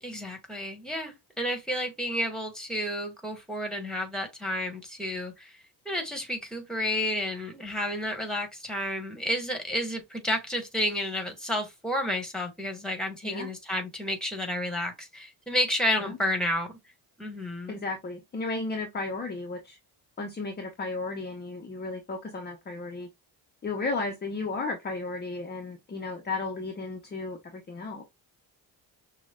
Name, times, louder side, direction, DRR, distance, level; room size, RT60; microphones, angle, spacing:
voice 1, 0.0-5.5 5.8-16.8 17.2-17.8, left 1 dB, ahead, 1.5 m, -31 dB
voice 2, 17.7-19.8 20.2-23.1 23.6-28.0, left 3 dB, 25° left, 0.7 m, -34 dB
6.2 x 2.3 x 2.3 m
cardioid pair, 120°, 42 cm